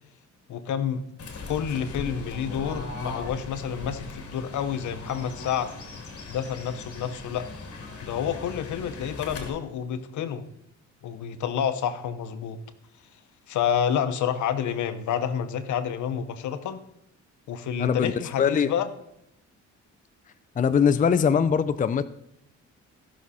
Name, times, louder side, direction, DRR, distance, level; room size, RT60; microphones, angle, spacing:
voice 1, 0.5-1.0 1.5-5.7 6.3-7.5 8.0-10.4 11.0-12.6 13.5-16.8 17.5-18.9, left 8 dB, 75° left, 11 dB, 1.0 m, -29 dB
Fowl / Bird, 1.2-9.5, left 3 dB, 50° left, 2.4 m, -39 dB
voice 2, 17.8-18.1 18.4-18.7 20.6-22.0, left 7 dB, 25° left, 12 dB, 0.5 m, -21 dB
15.0 x 6.2 x 4.2 m, 0.79 s
cardioid pair, 90°, 30 cm